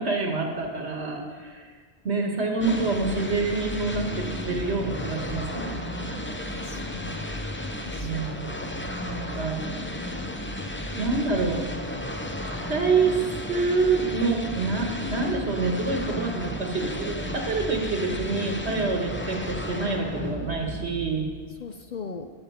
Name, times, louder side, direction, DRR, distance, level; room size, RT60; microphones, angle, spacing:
voice 1, 0.0-1.7 2.0-5.8 8.0-8.5 9.1-9.6 10.9-11.6 12.7-13.2 13.5-21.3, right 3 dB, 75° right, 2 dB, 1.9 m, -27 dB
sound 1, 2.6-21.6, left 1 dB, 15° left, 0.6 m, -33 dB
voice 2, 6.5-7.5 7.8-8.3 21.6-22.3, left 4 dB, 50° left, 7 dB, 0.6 m, -39 dB
15.0 x 6.8 x 5.7 m, 1.5 s
omnidirectional pair, 1.1 m